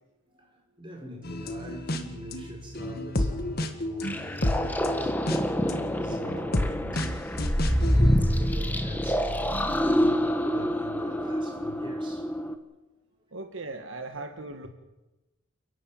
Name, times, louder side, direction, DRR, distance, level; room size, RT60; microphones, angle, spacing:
voice 1, 0.3-12.3, left 1 dB, 25° right, 5.0 m, -44 dB
sound 1, 1.2-9.0 9.5-10.1, left 1 dB, 45° left, 1.8 m, -32 dB
sound 2, 4.0-12.5, equal, 10° left, 1.3 m, -26 dB
voice 2, 13.3-14.7, right 2 dB, 70° right, 1.6 m, -38 dB
29.5 x 11.0 x 8.8 m
head